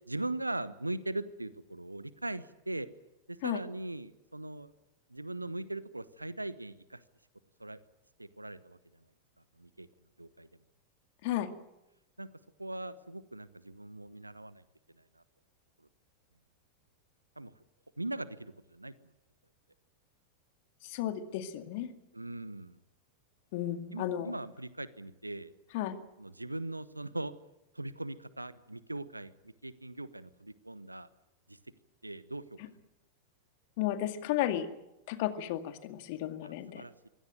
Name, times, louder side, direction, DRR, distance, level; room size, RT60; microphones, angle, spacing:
voice 1, 0.1-2.9 3.3-4.7 5.1-7.0 7.6-7.8 8.2-8.8 9.6-9.9 10.2-10.5 12.2-12.3 12.6-14.6 15.2-15.3 17.4-17.5 18.0-19.1 22.1-22.8 23.9-25.5 26.2-27.3 27.7-31.1 31.5-31.6 32.0-32.6 36.4-37.1, right 2 dB, 85° right, 17 dB, 1.0 m, -40 dB
voice 2, 20.8-21.9 23.5-24.3 25.7-26.0 33.8-34.7 35.1-36.8, left 12 dB, 50° left, 9 dB, 2.1 m, -33 dB
23.5 x 17.0 x 9.3 m, 0.93 s
figure-of-eight pair, 90°, 0 cm